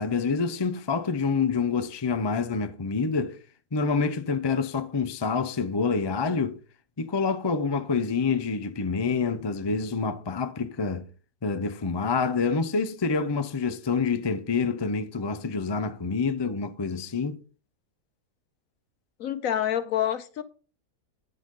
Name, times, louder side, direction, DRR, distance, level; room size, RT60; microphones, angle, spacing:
voice 1, 0.0-3.4 3.7-6.6 7.0-11.1 11.4-17.4, left 4 dB, 30° left, 0.4 m, -27 dB
voice 2, 19.2-20.4, left 10 dB, 60° left, 1.2 m, -27 dB
10.5 x 10.0 x 3.8 m
omnidirectional pair, 1.8 m